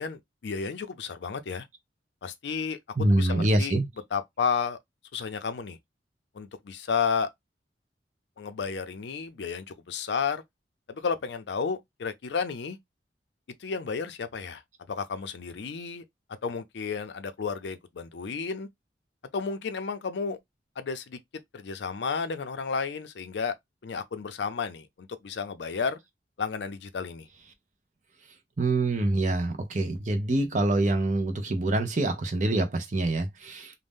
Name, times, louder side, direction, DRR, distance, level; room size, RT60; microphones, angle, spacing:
voice 1, 0.0-1.7 2.2-2.8 3.1-3.7 4.1-4.8 5.1-5.8 6.3-7.3 8.4-10.4 10.9-12.8 13.6-14.6 14.9-16.0 16.4-18.7 19.3-20.4 20.8-21.2 21.5-23.5 23.8-26.0 26.4-27.3, left 5 dB, 75° left, 0.4 m, -32 dB
voice 2, 3.0-3.9 28.6-33.7, right 2 dB, 45° right, 0.6 m, -25 dB
2.6 x 2.1 x 3.4 m
head